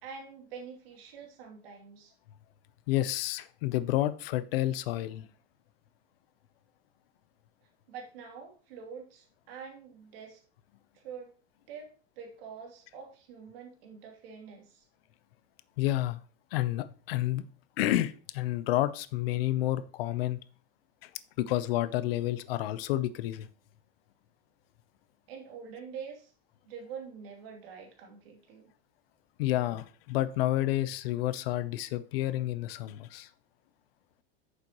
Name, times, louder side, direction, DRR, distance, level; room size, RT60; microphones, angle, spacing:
voice 1, 0.0-2.1 7.9-10.4 10.9-11.3 11.7-14.8 25.3-26.3 26.6-28.7, right 6 dB, 75° right, 1 dB, 2.8 m, -46 dB
voice 2, 2.9-5.3 15.8-16.2 16.5-17.4 17.8-20.4 21.0-21.1 21.4-23.5 29.4-33.3, left 15 dB, 75° left, 14 dB, 0.7 m, -30 dB
9.3 x 6.9 x 3.0 m, 0.36 s
supercardioid pair, 160°, 29 cm